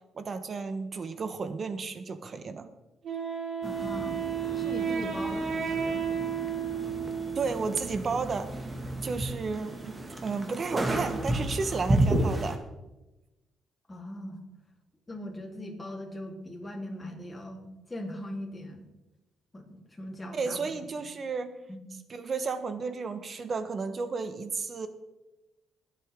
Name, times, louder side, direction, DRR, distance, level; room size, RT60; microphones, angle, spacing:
voice 1, 0.1-2.7 7.3-8.6 9.0-9.9 10.2-12.6 20.3-21.5 22.1-24.9, right 4 dB, 45° right, 10 dB, 1.3 m, -33 dB
Wind instrument woodwind instrument, 3.0-7.8, right 7 dB, 60° right, 3.5 m, -32 dB
voice 2, 3.6-4.2 4.5-6.1 13.9-14.4 15.1-18.8 19.5-21.0 21.7-21.8, left 1 dB, 15° left, -1 dB, 3.5 m, -40 dB
sound 1, 3.6-12.6, right 1 dB, 20° right, 1.9 m, -32 dB
22.5 x 8.3 x 3.7 m, 1.0 s
cardioid pair, 90°, 0 cm